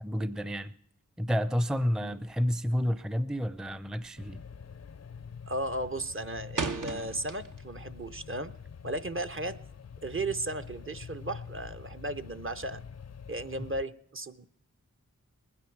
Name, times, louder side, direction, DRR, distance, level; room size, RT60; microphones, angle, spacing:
voice 1, 0.0-0.7 1.2-4.4, equal, ahead, 15 dB, 0.5 m, -30 dB
sound 1, 3.3-3.7 4.0-4.4 4.7-5.2 5.5-7.8 8.1-9.6, right 4 dB, 75° right, 1.0 m, -37 dB
sound 2, 4.2-13.8, left 6 dB, 55° left, 0.5 m, -46 dB
voice 2, 5.5-8.5 8.8-9.6 10.0-12.8 13.3-14.5, right 2 dB, 40° right, 10 dB, 0.7 m, -35 dB
20.0 x 9.6 x 5.9 m, 0.70 s
wide cardioid pair, 60°, 31 cm